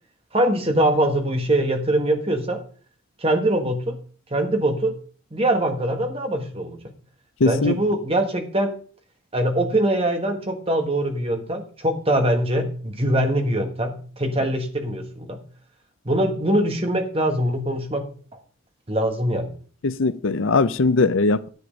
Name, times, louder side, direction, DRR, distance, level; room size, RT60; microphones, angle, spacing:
voice 1, 0.3-2.6 3.2-4.0 4.3-5.0 5.3-6.8 7.4-8.8 9.3-15.4 16.0-18.1 18.9-19.5, right 1 dB, 25° right, 4 dB, 1.5 m, -22 dB
voice 2, 7.4-7.8 19.8-21.5, left 3 dB, 65° left, 14 dB, 0.6 m, -20 dB
10.5 x 8.1 x 5.2 m, 0.42 s
head